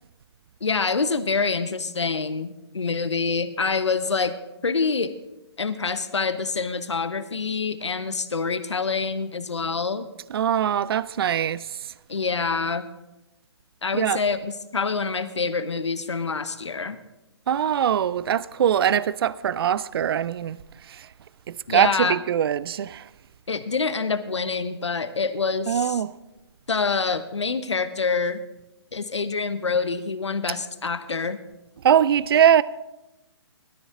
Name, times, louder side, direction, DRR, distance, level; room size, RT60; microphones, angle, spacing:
voice 1, 0.6-4.4 4.6-5.1 5.6-10.1 12.1-12.9 13.8-17.0 21.7-22.2 23.5-26.0 26.7-28.4 28.9-31.4, left 4 dB, 85° left, 0.9 m, -26 dB
voice 2, 10.3-11.7 13.9-14.2 17.5-20.6 20.9-21.1 21.5-23.0 25.7-26.1 30.5-30.6 31.8-32.6, right 9 dB, 55° right, 0.4 m, -22 dB
17.0 x 13.0 x 3.7 m
figure-of-eight pair, 140°, 14 cm